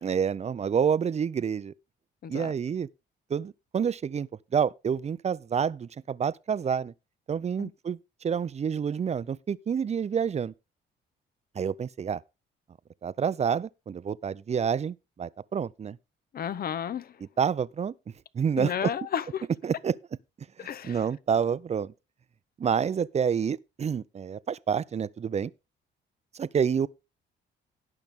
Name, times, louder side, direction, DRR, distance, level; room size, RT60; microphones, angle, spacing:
voice 1, 0.0-1.7 2.3-2.9 3.3-6.9 7.3-10.5 11.6-12.2 13.0-16.0 17.4-17.9 18.3-18.9 19.6-20.0 20.8-21.9 22.6-25.5 26.3-26.9, right 7 dB, 35° right, 0.5 m, -28 dB
voice 2, 2.2-2.5 7.6-7.7 16.3-17.2 18.6-19.5 20.6-21.1, left 8 dB, 50° left, 0.8 m, -33 dB
17.5 x 5.9 x 3.6 m
cardioid pair, 90°, 20 cm